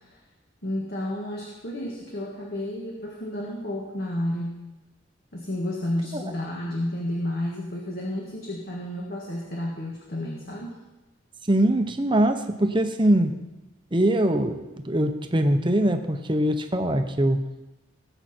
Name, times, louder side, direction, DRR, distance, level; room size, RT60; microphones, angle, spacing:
voice 1, 0.6-4.5 5.3-10.8, left 1 dB, 55° left, -3 dB, 1.9 m, -31 dB
voice 2, 11.5-13.3 13.9-17.5, right 1 dB, 25° right, 6 dB, 0.9 m, -22 dB
18.5 x 7.9 x 4.5 m, 1.0 s
head